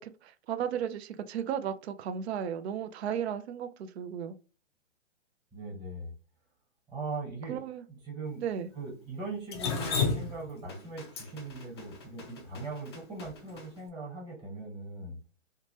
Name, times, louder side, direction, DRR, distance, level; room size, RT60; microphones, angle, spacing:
voice 1, 0.0-4.4 7.5-7.8 8.4-8.7, right 8 dB, 60° right, 0.5 m, -35 dB
voice 2, 5.5-6.1 6.9-7.6 7.9-8.4 8.7-15.2, right 3 dB, 15° right, 1.2 m, -40 dB
Drip, 9.5-13.6, left 5 dB, 25° left, 0.3 m, -33 dB
2.9 x 2.2 x 2.7 m
hypercardioid pair, 125°, 36 cm